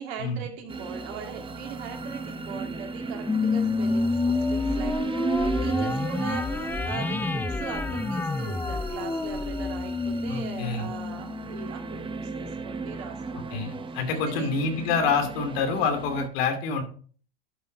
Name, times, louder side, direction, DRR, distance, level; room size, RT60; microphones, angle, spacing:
voice 1, 0.0-13.7 14.1-14.5, right 6 dB, 65° right, 4 dB, 2.4 m, -40 dB
sound 1, 0.7-16.3, right 4 dB, 15° right, 0.8 m, -35 dB
sound 2, 3.3-12.0, left 3 dB, 5° left, 0.4 m, -29 dB
voice 2, 10.3-10.9 13.5-16.8, left 5 dB, 60° left, 6 dB, 2.8 m, -27 dB
11.5 x 5.6 x 4.6 m, 0.44 s
hypercardioid pair, 95°, 33 cm